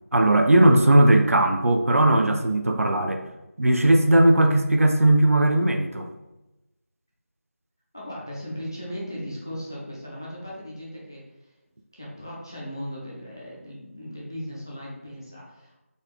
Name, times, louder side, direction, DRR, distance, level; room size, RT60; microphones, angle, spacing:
voice 1, 0.1-3.2 3.6-6.1, right 1 dB, 75° right, 5 dB, 0.5 m, -18 dB
voice 2, 7.9-11.6 11.9-15.8, equal, 15° left, -5 dB, 0.4 m, -37 dB
3.9 x 2.3 x 3.4 m, 0.99 s
figure-of-eight pair, 175°, 8 cm